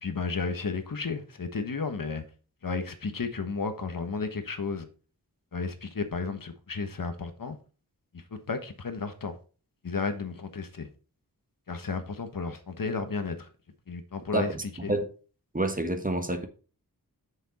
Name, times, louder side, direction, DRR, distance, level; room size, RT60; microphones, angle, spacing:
voice 1, 0.0-2.2 2.6-4.9 5.5-7.6 8.3-9.3 9.8-10.9 11.7-13.5 13.9-14.5 14.8-14.9, left 4 dB, 60° left, 1.3 m, -33 dB
voice 2, 14.3-15.1 15.5-16.5, right 1 dB, 20° right, 1.3 m, -29 dB
7.2 x 6.7 x 4.2 m
wide cardioid pair, 65°, 39 cm